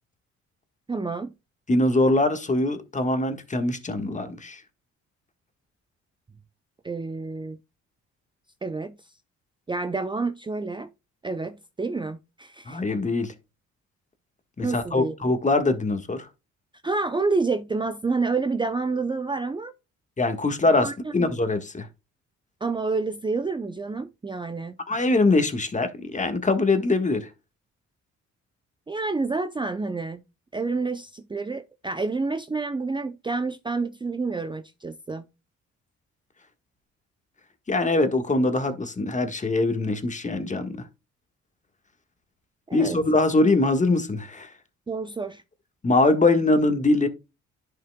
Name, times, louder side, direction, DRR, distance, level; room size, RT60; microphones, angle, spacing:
voice 1, 0.9-1.3 6.8-7.6 8.6-9.0 9.7-10.9 11.2-12.8 14.6-15.2 16.8-19.7 20.8-21.3 22.6-24.7 28.9-30.2 30.5-35.3 42.7-43.0 44.9-45.4, right 3 dB, 15° right, 0.6 m, -28 dB
voice 2, 1.7-4.6 12.7-13.3 14.6-16.3 20.2-21.9 24.9-27.3 37.7-40.8 42.7-44.5 45.8-47.1, left 2 dB, 25° left, 1.5 m, -23 dB
10.5 x 5.8 x 2.2 m
cardioid pair, 90°, 30 cm